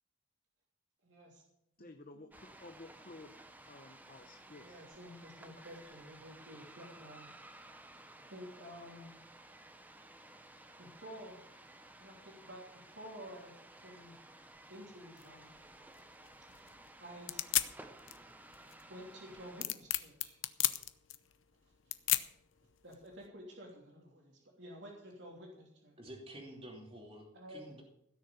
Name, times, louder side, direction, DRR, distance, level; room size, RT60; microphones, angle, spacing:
voice 1, 1.0-1.4 4.5-7.3 8.2-9.1 10.8-11.4 12.0-13.5 13.8-14.2 14.7-15.5 17.0-17.4 18.9-20.4 21.8-22.0 22.8-26.0 27.3-27.6, equal, 60° right, -2 dB, 2.9 m, -51 dB
voice 2, 1.8-3.3 3.7-4.8, left 2 dB, 45° left, 6 dB, 0.9 m, -53 dB
sound 1, 2.3-19.6, right 1 dB, 10° right, 0.8 m, -56 dB
sound 2, 15.2-23.3, left 14 dB, 75° left, 0.8 m, -37 dB
voice 3, 26.0-27.8, right 1 dB, 30° right, -1 dB, 2.9 m, -50 dB
16.5 x 6.7 x 7.1 m, 0.77 s
head